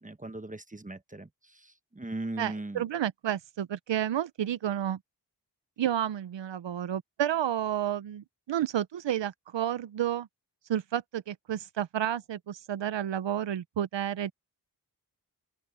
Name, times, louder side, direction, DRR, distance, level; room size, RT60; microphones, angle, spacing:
voice 1, 0.0-2.8, right 2 dB, 20° right, 1.1 m, -39 dB
voice 2, 2.4-5.0 5.8-10.3 10.7-14.3, right 10 dB, 85° right, 0.7 m, -31 dB
open air
cardioid pair, 60°, 43 cm